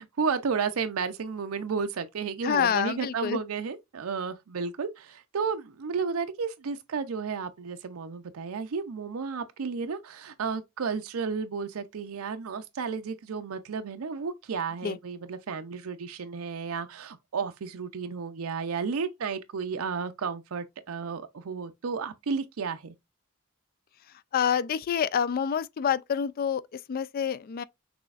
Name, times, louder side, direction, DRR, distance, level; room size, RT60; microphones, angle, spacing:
voice 1, 0.0-22.9, right 5 dB, 75° right, 0.5 m, -32 dB
voice 2, 2.4-3.4 14.8-15.0 24.3-27.6, left 8 dB, 45° left, 0.3 m, -27 dB
6.1 x 3.3 x 2.4 m
head